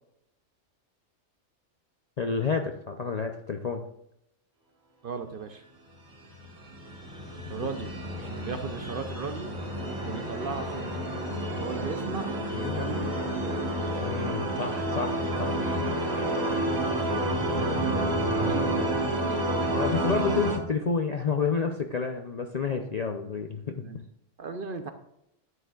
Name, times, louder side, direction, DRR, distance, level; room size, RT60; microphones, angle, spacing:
voice 1, 2.2-3.8 12.5-12.9 14.0-15.6 19.7-24.0, left 5 dB, 50° left, 4 dB, 0.5 m, -30 dB
voice 2, 5.0-5.6 7.5-7.9 8.2-9.5 10.0-10.9 11.6-13.6 17.1-17.2 17.6-19.5 23.8-24.0 24.4-24.9, right 5 dB, 55° right, 7 dB, 0.7 m, -36 dB
sound 1, 6.2-20.6, right 1 dB, 30° right, 1.6 m, -30 dB
10.5 x 9.1 x 2.3 m, 0.78 s
omnidirectional pair, 1.4 m